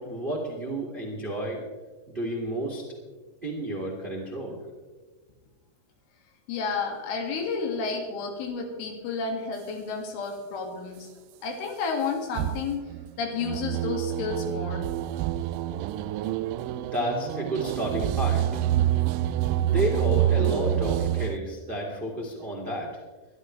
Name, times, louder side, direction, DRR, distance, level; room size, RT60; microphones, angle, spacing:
voice 1, 0.0-1.6 2.1-2.8 3.4-4.6 16.9-18.7 19.6-23.0, right 1 dB, 20° right, -1 dB, 1.6 m, -31 dB
voice 2, 6.5-11.1 11.4-12.8 13.2-14.8, left 5 dB, 85° left, 2 dB, 4.6 m, -31 dB
sound 1, 12.4-21.4, right 12 dB, 85° right, 3.0 m, -27 dB
22.5 x 13.0 x 3.3 m, 1.3 s
omnidirectional pair, 5.4 m